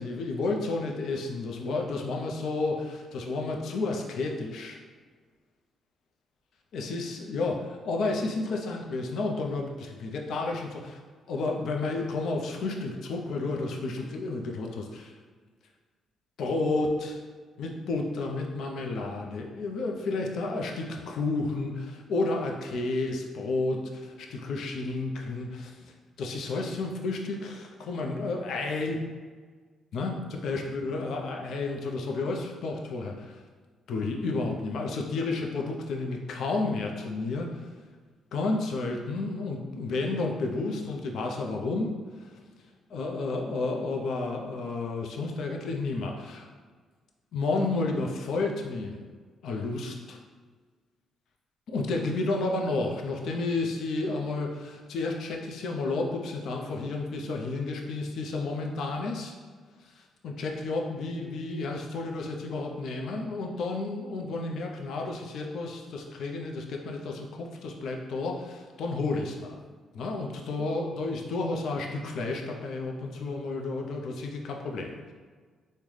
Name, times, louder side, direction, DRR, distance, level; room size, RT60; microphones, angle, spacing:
voice 1, 0.0-4.8 6.7-11.0 11.3-15.1 16.4-17.2 17.6-25.9 26.2-29.0 29.9-33.4 33.9-37.6 38.3-41.9 42.9-46.5 47.3-49.0 49.4-50.2 51.7-59.3 60.2-69.6 69.9-75.1, left 3 dB, 70° left, 1 dB, 0.5 m, -31 dB
3.7 x 2.1 x 3.1 m, 1.5 s
cardioid pair, 90°, 0 cm